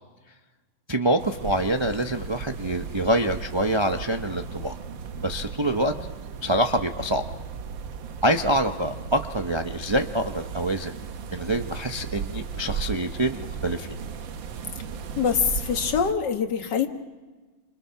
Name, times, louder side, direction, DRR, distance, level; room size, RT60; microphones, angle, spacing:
voice 1, 0.9-4.7 5.2-5.9 6.4-7.2 8.2-11.0 11.3-14.0, right 1 dB, 40° right, 5 dB, 0.4 m, -25 dB
sound 1, 1.2-16.1, right 6 dB, 80° right, 1.8 m, -36 dB
voice 2, 15.2-16.9, left 6 dB, 65° left, 5 dB, 2.2 m, -24 dB
28.5 x 26.0 x 5.8 m, 1.3 s
omnidirectional pair, 2.0 m